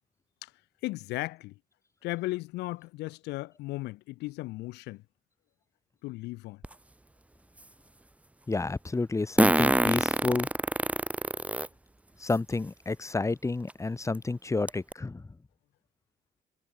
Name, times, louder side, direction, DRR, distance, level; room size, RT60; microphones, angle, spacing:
voice 1, 0.8-1.5 2.0-5.0 6.0-6.6, left 20 dB, 90° left, 1.8 m, -36 dB
Fart, 6.6-6.7 9.4-11.7 12.3-12.4 13.7-13.8 14.2-14.3 14.7-14.9, right 1 dB, 10° right, 1.2 m, -25 dB
voice 2, 8.5-10.5 12.2-15.4, left 3 dB, 15° left, 4.7 m, -30 dB
cardioid pair, 110°, 17 cm